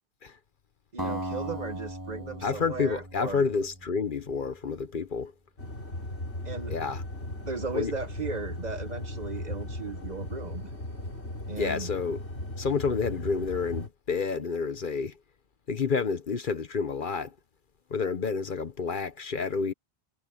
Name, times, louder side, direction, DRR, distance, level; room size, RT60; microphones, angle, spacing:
voice 1, 0.9-3.4 6.4-6.7 7.4-10.7 11.5-11.9, right 4 dB, 45° right, 1.0 m, -36 dB
Acoustic guitar, 1.0-4.2, equal, 20° right, 6.9 m, -37 dB
voice 2, 2.4-5.3 6.7-7.0 7.7-7.9 11.6-12.2 12.6-15.2 15.7-17.3 17.9-19.7, left 5 dB, 55° left, 1.0 m, -29 dB
sound 1, 5.6-13.9, left 1 dB, 90° left, 4.3 m, -37 dB
omnidirectional pair, 1.1 m